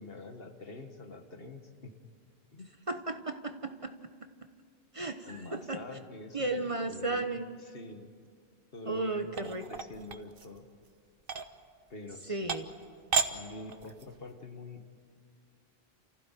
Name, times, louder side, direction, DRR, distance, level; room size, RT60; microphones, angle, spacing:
voice 1, 0.0-1.9 2.5-2.7 5.2-8.1 8.7-10.7 11.9-12.6 13.3-14.8, left 2 dB, 65° left, 5 dB, 1.9 m, -46 dB
voice 2, 2.9-3.9 4.9-5.8 6.3-7.5 8.9-9.6 12.3-12.7, right 2 dB, 35° right, 7 dB, 1.1 m, -34 dB
sound 1, 9.3-10.6 11.2-11.5 12.1-12.2 12.5-12.8 13.1-13.3 13.7-14.2, right 5 dB, 60° right, 1.2 m, -32 dB
29.5 x 15.5 x 9.1 m, 2.2 s
omnidirectional pair, 1.0 m